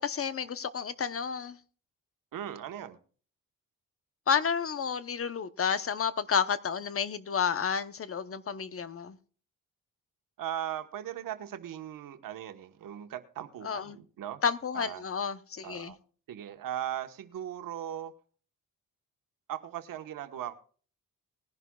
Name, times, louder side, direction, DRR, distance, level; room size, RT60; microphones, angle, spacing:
voice 1, 0.0-1.6 4.3-9.2 13.6-14.0 14.4-15.9, left 6 dB, 45° left, 0.9 m, -31 dB
voice 2, 2.3-3.0 10.4-14.4 14.7-15.0 15.6-16.0 16.3-18.1 19.5-20.5, right 11 dB, 75° right, 1.3 m, -38 dB
20.0 x 11.0 x 2.3 m
cardioid pair, 90°, 33 cm